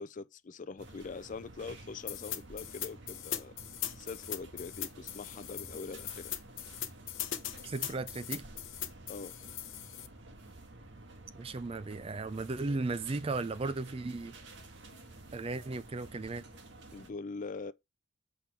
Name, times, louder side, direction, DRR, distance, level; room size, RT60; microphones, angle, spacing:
voice 1, 0.0-3.5 4.0-6.3 9.1-9.4 16.9-17.7, left 4 dB, 40° left, 0.4 m, -43 dB
sound 1, 0.8-17.1, right 2 dB, 60° right, 1.4 m, -52 dB
sound 2, 2.1-10.1, left 11 dB, 65° left, 0.8 m, -40 dB
voice 2, 7.7-8.5 11.3-14.3 15.3-16.5, right 3 dB, 30° right, 0.4 m, -36 dB
8.1 x 3.6 x 4.5 m
head